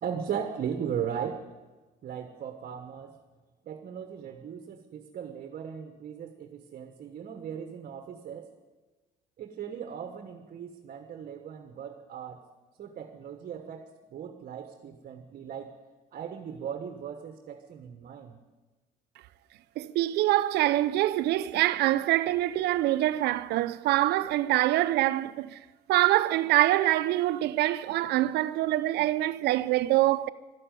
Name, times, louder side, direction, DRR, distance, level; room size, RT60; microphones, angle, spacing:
voice 1, 0.0-1.5 2.0-3.2 3.6-8.5 9.4-12.5 12.8-15.8 16.1-18.4, right 8 dB, 55° right, 1.3 m, -37 dB
voice 2, 19.8-25.6 25.9-30.3, right 15 dB, 80° right, 0.7 m, -25 dB
12.5 x 12.5 x 9.2 m
cardioid pair, 110°, 17 cm